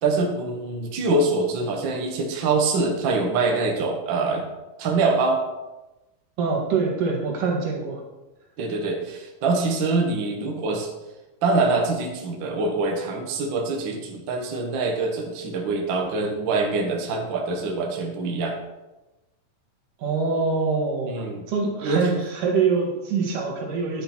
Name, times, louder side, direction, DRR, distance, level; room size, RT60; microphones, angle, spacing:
voice 1, 0.0-4.5 4.8-5.4 8.6-10.9 11.4-18.5 21.1-21.5 21.8-22.2, right 3 dB, 50° right, 1 dB, 1.7 m, -24 dB
voice 2, 6.4-8.0 20.0-21.2 21.5-24.0, right 4 dB, 85° right, 0 dB, 3.4 m, -24 dB
10.0 x 7.9 x 4.4 m, 1.1 s
omnidirectional pair, 3.7 m